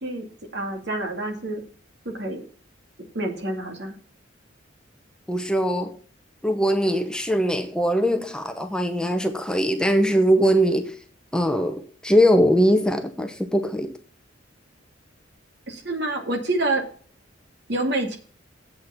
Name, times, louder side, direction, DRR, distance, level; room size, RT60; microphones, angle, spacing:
voice 1, 0.5-1.6 2.0-2.4 3.1-4.0 15.7-16.8 17.7-18.2, right 2 dB, 60° right, 2.5 m, -27 dB
voice 2, 5.3-6.0 6.4-11.0 11.3-13.9, equal, 5° left, 0.8 m, -21 dB
8.2 x 6.4 x 7.1 m
head